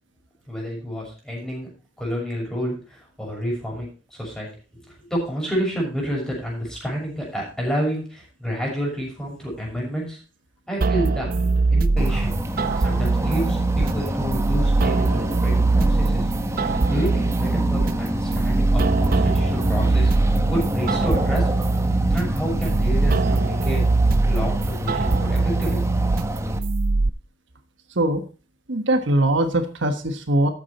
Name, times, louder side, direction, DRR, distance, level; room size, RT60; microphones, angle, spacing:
voice 1, 0.5-1.7 2.0-4.5 4.8-10.2 10.7-11.4 11.7-12.4 12.8-16.3 16.6-21.5 22.1-23.8 24.2-25.8, equal, 5° left, -3 dB, 6.4 m, -29 dB
sound 1, 10.8-27.1, right 3 dB, 50° right, 0.6 m, -22 dB
sound 2, 12.0-26.6, equal, 15° right, 1.2 m, -27 dB
voice 2, 28.7-30.5, right 1 dB, 70° right, 8 dB, 1.3 m, -21 dB
13.0 x 8.6 x 4.3 m, 0.35 s
head